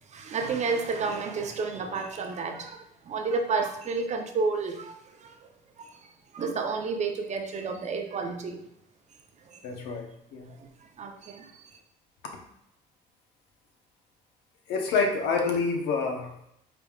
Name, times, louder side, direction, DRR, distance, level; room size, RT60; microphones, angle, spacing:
voice 1, 0.0-5.5 5.8-8.6 9.4-9.7 10.5-11.8, right 4 dB, 45° right, 4 dB, 0.6 m, -31 dB
voice 2, 9.6-10.5 14.7-16.5, left 4 dB, 85° left, 3 dB, 0.8 m, -28 dB
4.9 x 3.4 x 2.3 m, 0.77 s
cardioid pair, 110°, 17 cm